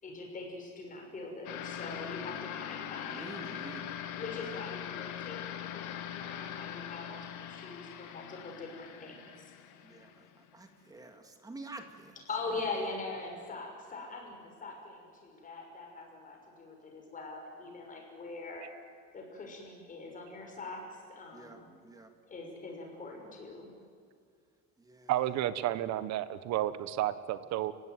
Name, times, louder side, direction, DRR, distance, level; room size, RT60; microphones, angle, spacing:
voice 1, 0.0-3.5 4.1-9.5 12.3-18.7 19.1-21.7 22.2-23.7, left 3 dB, 25° left, 1 dB, 6.0 m, -42 dB
sound 1, 1.5-10.5, left 10 dB, 65° left, 2.3 m, -42 dB
voice 2, 3.0-4.0 9.8-12.1 21.3-22.1 24.8-25.1, right 2 dB, 10° right, 6 dB, 2.2 m, -48 dB
voice 3, 25.1-27.7, right 13 dB, 55° right, 14 dB, 1.3 m, -31 dB
30.0 x 16.5 x 9.4 m, 2.2 s
cardioid pair, 165°, 32 cm